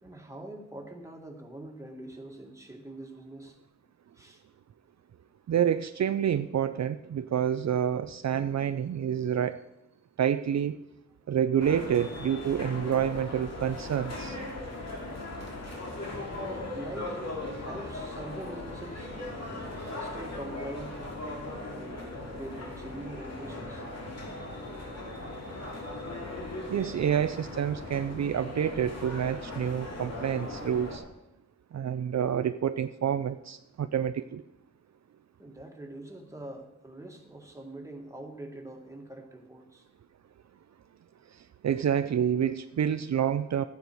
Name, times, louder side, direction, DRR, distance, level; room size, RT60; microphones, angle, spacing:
voice 1, 0.0-3.6 4.2-4.4 16.4-19.1 20.0-21.0 21.6-23.8 35.4-39.9, right 1 dB, 10° right, 1 dB, 1.8 m, -44 dB
voice 2, 5.5-9.6 10.2-10.8 11.3-14.4 26.7-31.0 31.7-34.4 41.6-43.6, right 9 dB, 65° right, 11 dB, 0.4 m, -28 dB
sound 1, 11.6-31.0, left 2 dB, 60° left, 2.8 m, -38 dB
12.5 x 9.5 x 4.5 m, 0.89 s
wide cardioid pair, 85°, 29 cm